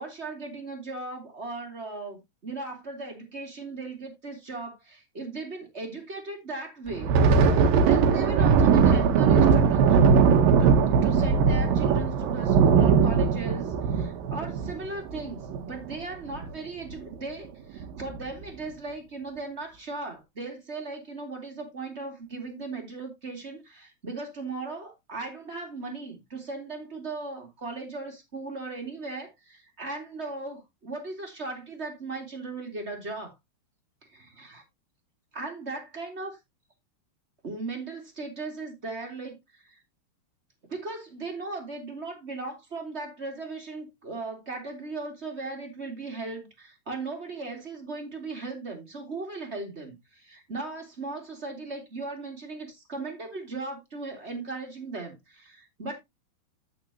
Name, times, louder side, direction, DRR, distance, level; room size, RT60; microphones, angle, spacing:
voice 1, 0.0-7.2 7.8-10.0 10.6-33.3 34.0-34.6 35.3-36.4 37.4-39.8 40.7-56.0, right 3 dB, 20° right, 1.8 m, -37 dB
Thunder, 6.9-16.0 16.3-16.5 16.9-17.1 17.8-18.2, right 6 dB, 70° right, 2.6 m, -20 dB
14.5 x 5.0 x 2.8 m
omnidirectional pair, 4.7 m